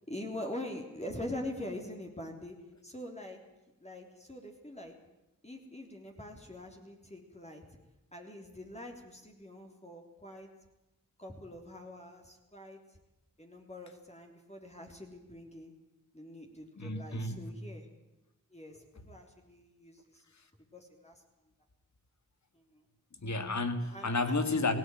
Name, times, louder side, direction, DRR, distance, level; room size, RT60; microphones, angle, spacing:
voice 1, 0.1-2.6 2.8-3.4 3.8-4.9 5.4-7.6 8.1-10.5 11.2-12.8 13.4-15.7 16.1-17.9 18.5-20.2 20.7-21.2 22.5-22.8 23.9-24.4, left 1 dB, 20° left, 1 dB, 3.5 m, -44 dB
voice 2, 16.8-17.5 23.2-24.8, left 2 dB, 60° left, 10 dB, 2.1 m, -31 dB
18.0 x 17.0 x 9.2 m, 0.99 s
cardioid pair, 45°, 32 cm